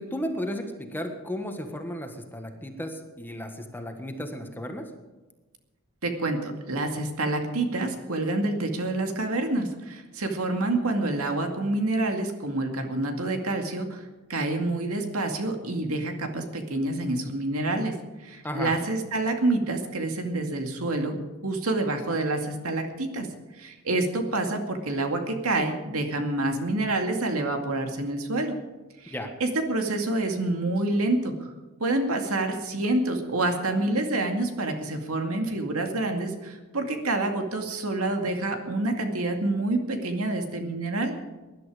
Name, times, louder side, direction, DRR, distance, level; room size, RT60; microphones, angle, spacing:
voice 1, 0.0-4.9 18.4-18.7 29.1-29.3, equal, 10° left, 5 dB, 1.5 m, -34 dB
voice 2, 6.0-14.0 14.3-18.0 18.2-21.2 21.4-23.3 23.6-28.6 29.0-29.1 29.4-31.3 31.8-41.1, right 2 dB, 75° right, 4 dB, 2.2 m, -27 dB
19.5 x 11.5 x 5.0 m, 1.2 s
head